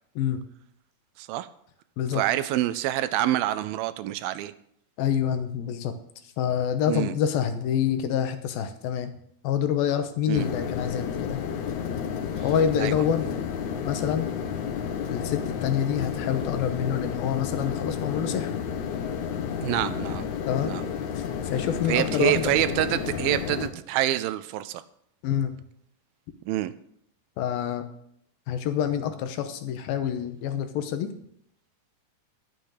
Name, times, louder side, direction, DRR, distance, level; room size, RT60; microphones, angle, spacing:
voice 1, 1.2-1.5 2.1-4.5 6.9-7.1 10.3-10.5 12.8-12.9 19.6-20.3 20.6-20.9 21.9-24.8 26.5-26.7, right 14 dB, 80° right, 2.3 m, -26 dB
voice 2, 5.0-5.9 6.4-9.1 9.4-11.4 12.4-13.2 13.8-14.3 15.1-18.5 20.5-20.7 21.2-22.5 25.2-25.6 27.4-27.9 28.5-31.1, left 9 dB, 80° left, 2.7 m, -27 dB
sound 1, 10.3-23.7, left 7 dB, 65° left, 2.1 m, -31 dB
11.5 x 7.7 x 6.6 m
omnidirectional pair, 4.3 m